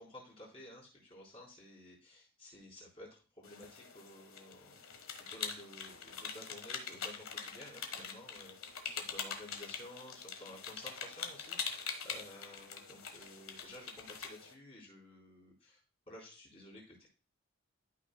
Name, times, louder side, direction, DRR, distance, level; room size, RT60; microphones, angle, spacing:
voice 1, 0.0-15.8 16.1-17.1, left 1 dB, 25° left, -4 dB, 3.9 m, -53 dB
sound 1, 3.4-14.5, left 6 dB, 75° left, 1.4 m, -44 dB
13.5 x 5.8 x 2.2 m, 0.36 s
head